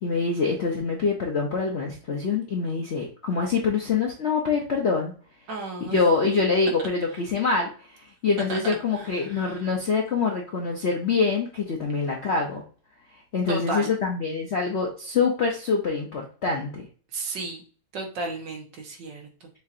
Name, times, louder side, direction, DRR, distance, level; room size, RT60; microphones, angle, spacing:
voice 1, 0.0-5.1 5.8-7.7 8.2-12.6 13.3-16.9, left 4 dB, 80° left, 0 dB, 0.5 m, -25 dB
voice 2, 5.5-6.0 8.5-8.6 8.9-9.7 13.5-13.9 17.1-17.6 17.9-19.5, right 3 dB, 65° right, 2 dB, 1.6 m, -34 dB
6.8 x 2.8 x 2.5 m, 0.41 s
omnidirectional pair, 2.2 m